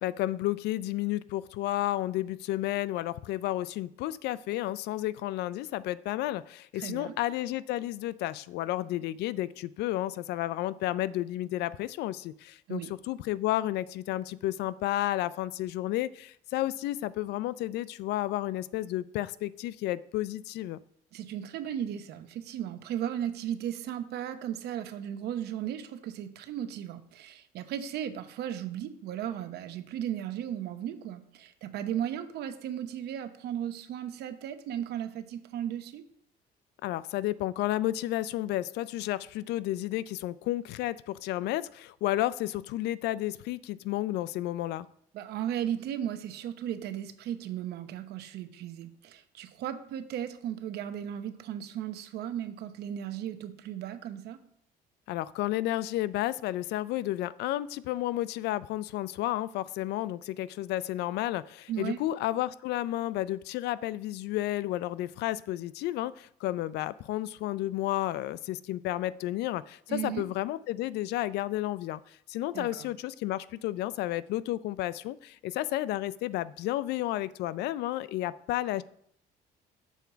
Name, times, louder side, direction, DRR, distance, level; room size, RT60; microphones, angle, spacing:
voice 1, 0.0-20.8 36.8-44.9 55.1-78.8, left 15 dB, 80° left, 18 dB, 0.4 m, -32 dB
voice 2, 6.8-7.2 12.7-12.9 21.1-36.0 45.1-54.4 61.7-62.0 69.9-70.2 72.5-72.9, right 10 dB, 75° right, 10 dB, 0.9 m, -36 dB
7.1 x 4.5 x 6.9 m, 0.67 s
cardioid pair, 110°, 17 cm